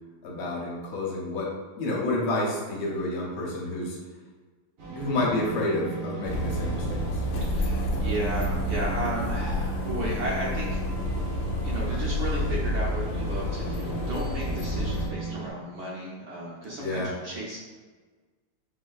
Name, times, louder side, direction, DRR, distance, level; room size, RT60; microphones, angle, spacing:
voice 1, 0.2-4.0 4.9-7.2 16.8-17.1, left 2 dB, 75° left, -3 dB, 1.6 m, -29 dB
sound 1, 4.8-15.5, right 4 dB, 85° right, 2.0 m, -37 dB
sound 2, 6.2-15.1, left 1 dB, 90° left, 1.6 m, -29 dB
voice 2, 7.5-17.6, right 1 dB, 65° right, -5 dB, 1.1 m, -34 dB
6.1 x 2.6 x 2.3 m, 1.4 s
omnidirectional pair, 2.4 m